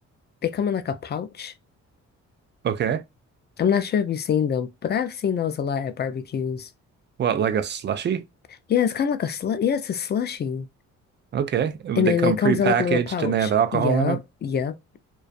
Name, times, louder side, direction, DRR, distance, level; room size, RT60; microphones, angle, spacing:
voice 1, 0.4-1.5 3.6-6.7 8.7-10.7 12.0-14.7, left 7 dB, 35° left, 0.4 m, -25 dB
voice 2, 2.6-3.0 7.2-8.2 11.3-14.2, right 8 dB, 35° right, 0.4 m, -23 dB
2.4 x 2.3 x 2.4 m
cardioid pair, 90°, 30 cm